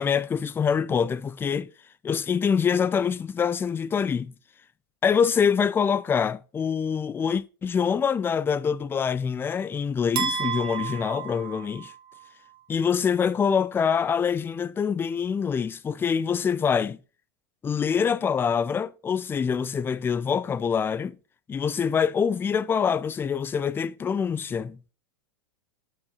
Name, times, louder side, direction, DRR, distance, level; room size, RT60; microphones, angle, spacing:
voice 1, 0.0-1.7 2.0-4.3 5.0-11.9 12.7-17.0 17.6-21.2 21.5-24.8, left 6 dB, 15° left, 0.5 m, -25 dB
sound 1, 10.2-12.3, right 7 dB, 40° right, 1.8 m, -31 dB
7.8 x 7.0 x 4.1 m
hypercardioid pair, 95°, 13 cm